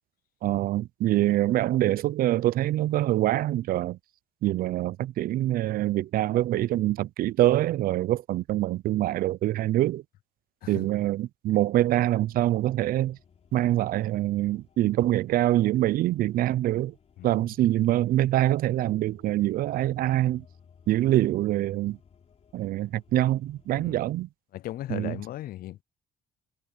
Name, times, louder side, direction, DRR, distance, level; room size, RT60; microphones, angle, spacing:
voice 1, 0.4-4.0 4.4-10.0 10.7-13.2 13.5-16.9 17.2-20.4 20.9-22.0 22.5-24.3 24.9-25.2, right 14 dB, 60° right, 0.4 m, -25 dB
sound 1, 11.9-23.9, left 7 dB, 40° left, 3.3 m, -59 dB
voice 2, 24.5-25.8, left 14 dB, 60° left, 0.5 m, -37 dB
cardioid pair, 110°, 17 cm